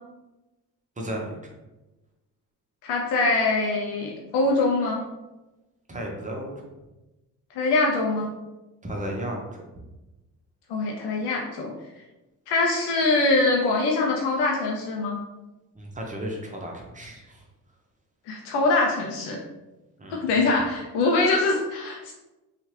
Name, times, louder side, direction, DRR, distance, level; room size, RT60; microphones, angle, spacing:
voice 1, 1.0-1.4 5.9-6.5 8.8-9.6 15.7-17.4 20.0-20.4, right 1 dB, 20° right, 0 dB, 0.8 m, -34 dB
voice 2, 2.8-5.0 7.6-8.3 10.7-11.7 12.5-15.2 18.3-19.4 20.1-22.1, left 3 dB, 70° left, 0 dB, 0.6 m, -23 dB
2.8 x 2.4 x 3.1 m, 1.0 s
supercardioid pair, 60°, 41 cm